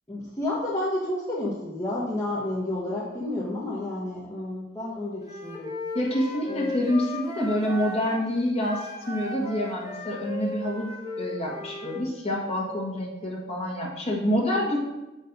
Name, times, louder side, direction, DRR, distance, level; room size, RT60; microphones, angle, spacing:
voice 1, 0.1-5.7 6.5-6.7, left 1 dB, 15° left, -6 dB, 1.1 m, -30 dB
Wind instrument woodwind instrument, 5.2-8.2 8.6-12.1, left 2 dB, 20° right, 1.5 m, -36 dB
voice 2, 5.9-10.9 11.2-14.8, left 1 dB, 35° left, -2 dB, 1.8 m, -27 dB
7.1 x 4.4 x 5.3 m, 1.0 s
head